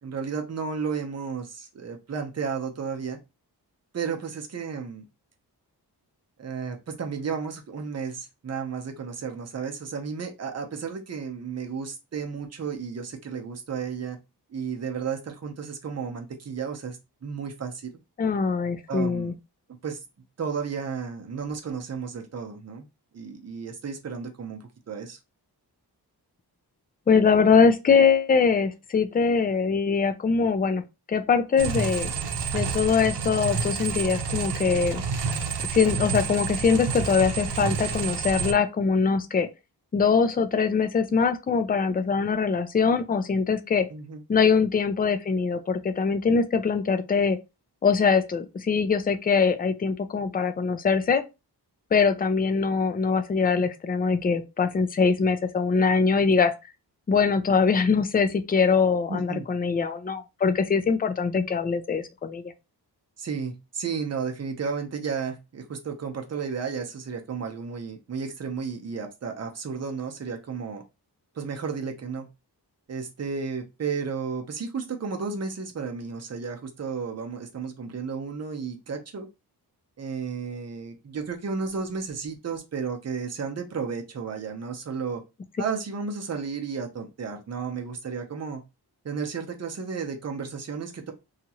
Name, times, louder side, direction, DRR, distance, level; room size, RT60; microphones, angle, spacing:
voice 1, 0.0-3.2 3.9-5.0 6.4-14.2 14.5-17.9 18.9-19.3 19.8-20.0 20.4-22.9 23.1-25.2 43.9-44.2 59.1-59.5 63.2-70.8 71.3-72.3 72.9-79.3 80.0-85.2 85.6-88.6 89.0-91.1, right 5 dB, 40° right, 0.6 m, -33 dB
voice 2, 18.2-19.3 27.1-30.8 31.1-32.1 32.5-35.0 35.7-39.5 39.9-43.9 44.3-47.4 47.8-51.2 51.9-56.5 57.1-62.4, left 5 dB, 25° left, 0.3 m, -22 dB
sound 1, 31.6-38.5, right 5 dB, 80° right, 0.7 m, -29 dB
2.9 x 2.4 x 2.8 m
wide cardioid pair, 115°, 40 cm